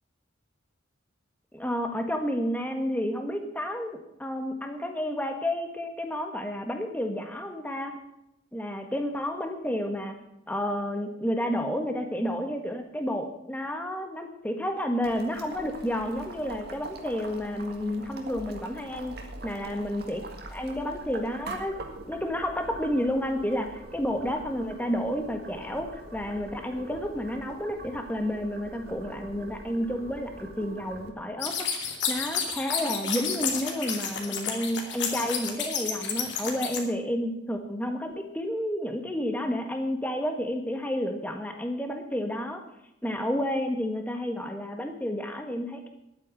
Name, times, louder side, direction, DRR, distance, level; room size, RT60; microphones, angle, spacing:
voice 1, 1.5-7.9 8.5-10.1 10.5-19.1 19.4-20.2 20.5-21.8 22.1-31.7 32.1-42.6 43.0-45.9, equal, 10° left, 5 dB, 1.6 m, -30 dB
Boiling, 15.0-31.1, right 2 dB, 55° right, 2.1 m, -43 dB
sound 1, 31.4-36.8, left 7 dB, 60° left, 2.7 m, -30 dB
11.0 x 9.4 x 7.9 m, 0.84 s
head